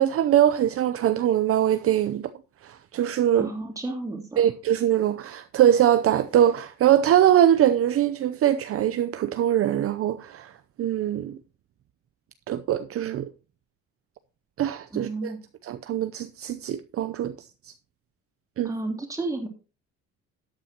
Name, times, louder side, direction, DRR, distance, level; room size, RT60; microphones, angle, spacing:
voice 1, 0.0-2.3 2.6-3.5 4.4-10.5 10.8-11.4 12.5-13.3 14.6-15.3 15.6-17.3 18.6-18.7, right 11 dB, 50° right, 0.6 m, -22 dB
voice 2, 3.4-4.4 14.9-15.4 18.6-19.5, right 2 dB, 10° right, 3.2 m, -32 dB
13.0 x 8.9 x 2.9 m
cardioid pair, 120°, 29 cm